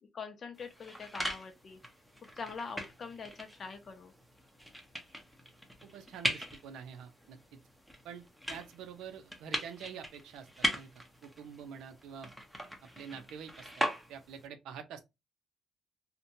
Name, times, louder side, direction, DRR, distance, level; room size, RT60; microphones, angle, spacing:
voice 1, 0.1-1.8 2.4-4.1, left 5 dB, 50° left, 0.6 m, -44 dB
sound 1, 0.5-14.5, equal, ahead, 0.7 m, -40 dB
voice 2, 5.8-7.6 8.0-8.2 8.5-12.3 13.0-13.8 14.1-15.0, right 7 dB, 90° right, 0.5 m, -47 dB
2.8 x 2.1 x 2.6 m
cardioid pair, 90°, 0 cm